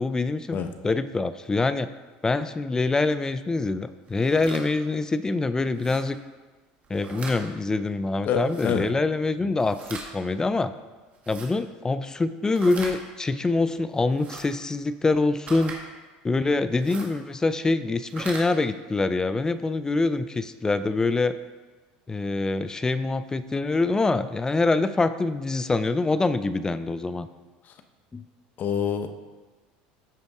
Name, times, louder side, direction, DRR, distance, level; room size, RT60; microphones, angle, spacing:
voice 1, 0.0-0.6 0.8-1.9 2.2-6.2 6.9-10.7 11.3-15.7 16.2-21.3 22.1-27.3 28.1-28.2, left 3 dB, 15° left, 13 dB, 0.4 m, -25 dB
sound 1, 4.1-4.6 5.7-6.0 6.8-7.4 8.4-8.7 9.6-10.1 11.1-11.5 12.5-12.9 14.1-14.4 15.4-15.8 16.7-17.1 18.0-18.4, right 4 dB, 35° right, 1.8 m, -40 dB
voice 2, 8.2-8.8 9.4-9.5 28.6-29.1, left 7 dB, 45° left, 8 dB, 0.8 m, -26 dB
13.0 x 5.2 x 3.5 m, 1.3 s
supercardioid pair, 110°, 4 cm